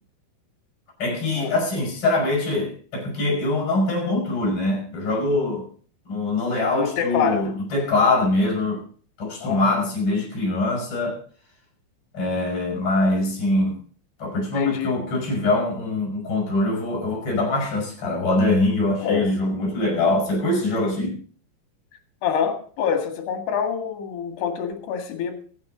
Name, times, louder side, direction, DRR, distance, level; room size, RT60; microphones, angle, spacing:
voice 1, 1.0-5.6 6.1-8.8 9.2-11.2 12.1-13.8 14.2-21.2, left 2 dB, 30° left, -1 dB, 6.5 m, -23 dB
voice 2, 6.8-7.4 9.4-9.7 14.5-15.0 19.0-19.3 22.2-25.4, left 7 dB, 65° left, 5 dB, 3.9 m, -26 dB
22.5 x 9.7 x 3.9 m, 0.44 s
omnidirectional pair, 5.3 m